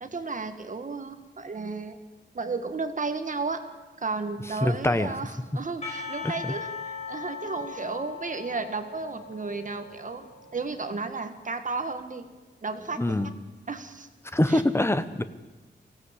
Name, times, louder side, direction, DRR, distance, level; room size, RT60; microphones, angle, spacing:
voice 1, 0.0-2.0 2.4-3.6 4.0-12.3 12.6-13.3 13.7-14.1 14.5-14.6, right 4 dB, 45° right, 8 dB, 1.6 m, -33 dB
voice 2, 4.6-5.1 6.2-6.5 13.0-13.3 14.3-15.2, left 1 dB, 15° left, 11 dB, 1.0 m, -24 dB
Percussion / Church bell, 5.8-11.1, left 5 dB, 35° left, 6.0 m, -39 dB
23.5 x 17.0 x 8.3 m, 1.2 s
wide cardioid pair, 155°, 19 cm